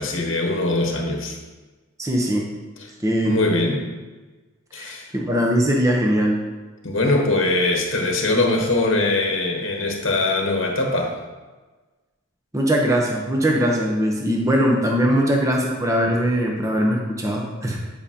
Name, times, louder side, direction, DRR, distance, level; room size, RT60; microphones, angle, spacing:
voice 1, 0.0-1.4 3.2-3.8 4.7-5.1 6.8-11.2, left 2 dB, 70° left, 1 dB, 1.0 m, -22 dB
voice 2, 2.0-2.5 3.0-3.3 4.8-6.4 12.5-17.8, equal, 15° right, -1 dB, 0.7 m, -21 dB
9.5 x 5.0 x 2.8 m, 1.3 s
head